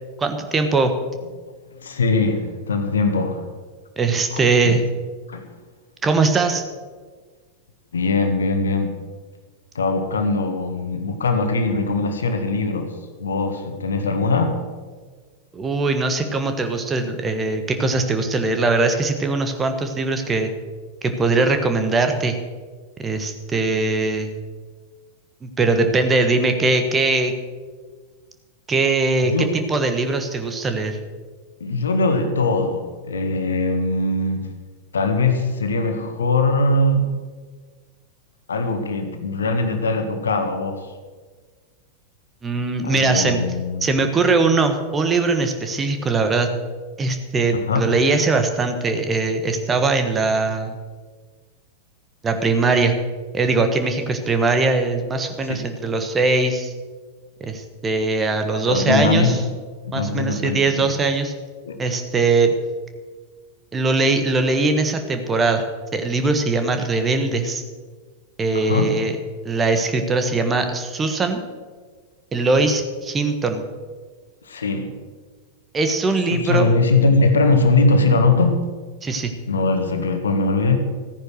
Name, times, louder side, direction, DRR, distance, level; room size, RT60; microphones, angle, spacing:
voice 1, 0.2-0.9 4.0-4.8 6.0-6.6 15.5-20.5 21.0-22.4 23.0-24.4 25.4-27.3 28.7-31.0 42.4-43.4 43.8-46.5 47.0-50.8 52.2-52.9 53.3-56.7 57.4-59.4 59.9-61.3 61.8-62.5 63.7-65.6 65.9-67.6 68.4-69.2 69.4-71.4 72.3-73.6 75.7-76.7 79.0-79.3, right 3 dB, 20° right, 7 dB, 1.5 m, -21 dB
voice 2, 1.8-3.4 4.3-4.7 5.3-5.5 7.9-9.0 9.7-14.6 29.2-29.6 31.6-34.5 34.9-37.1 38.5-40.9 42.8-43.9 47.5-47.9 55.4-55.6 58.5-59.4 59.8-60.9 61.6-61.8 68.5-69.0 74.4-75.0 76.3-78.6 79.5-80.8, left 3 dB, 70° left, 6 dB, 1.6 m, -21 dB
14.5 x 9.9 x 6.4 m, 1.5 s
figure-of-eight pair, 90°, 0 cm